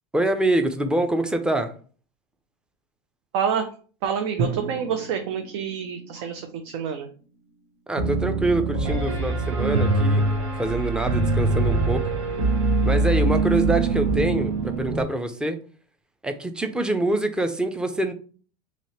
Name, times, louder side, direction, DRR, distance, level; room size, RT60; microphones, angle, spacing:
voice 1, 0.1-1.7 7.9-10.2 10.6-12.0 12.8-15.6 16.2-18.1, right 1 dB, 5° right, 8 dB, 0.5 m, -25 dB
voice 2, 3.3-3.7 4.0-7.1, right 7 dB, 70° right, 6 dB, 0.6 m, -27 dB
Drum, 4.4-8.2, right 4 dB, 45° right, 0.8 m, -35 dB
Piano, 8.0-15.0, right 3 dB, 90° right, 1.2 m, -23 dB
2.9 x 2.9 x 4.3 m, 0.40 s
supercardioid pair, 130°, 15 cm